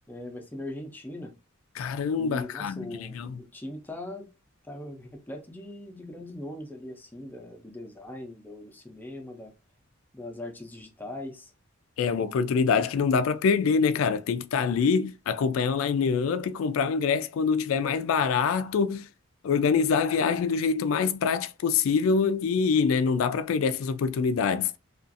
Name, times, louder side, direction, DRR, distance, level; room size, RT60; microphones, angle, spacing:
voice 1, 0.1-1.3 2.1-4.3 4.6-9.5 10.1-11.5, left 1 dB, 10° left, 0.5 m, -40 dB
voice 2, 1.8-3.4 12.0-19.1 19.4-24.7, left 5 dB, 70° left, 0.3 m, -25 dB
2.4 x 2.4 x 2.5 m
head